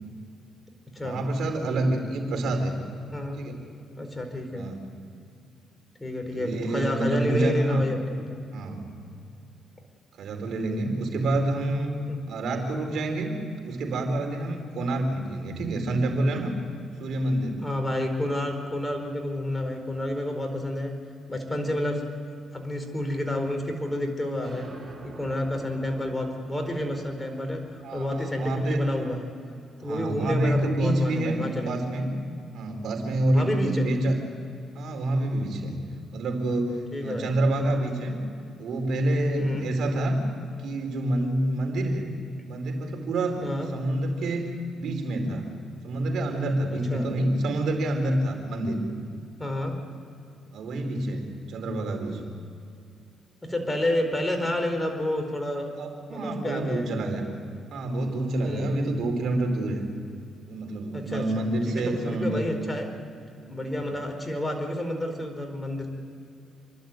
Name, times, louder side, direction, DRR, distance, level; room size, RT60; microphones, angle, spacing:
voice 1, 1.0-2.7 3.3-3.6 4.5-4.8 6.3-7.8 8.5-8.8 10.2-11.9 12.3-13.4 13.6-16.5 17.0-17.6 27.8-28.8 29.8-32.2 32.5-34.2 34.7-35.8 36.1-38.2 38.6-40.2 40.6-42.1 42.5-43.4 43.7-45.5 45.8-48.8 50.5-52.2 55.8-57.2 57.7-59.8 60.5-62.5 63.8-63.9, right 1 dB, 70° right, 3 dB, 4.4 m, -27 dB
voice 2, 4.0-4.7 6.0-8.4 12.1-12.2 17.6-20.9 21.3-22.0 22.5-24.7 25.2-29.3 29.8-31.9 33.3-33.9 36.9-37.3 39.4-39.7 43.4-43.7 46.7-47.1 49.4-49.7 53.5-55.7 56.1-56.9 58.4-58.9 60.9-62.9 63.5-65.9, left 1 dB, 15° left, 4 dB, 4.6 m, -30 dB
sound 1, 24.4-31.7, right 2 dB, 35° right, 6.4 m, -48 dB
28.0 x 12.0 x 9.2 m, 2.6 s
cardioid pair, 90°, 0 cm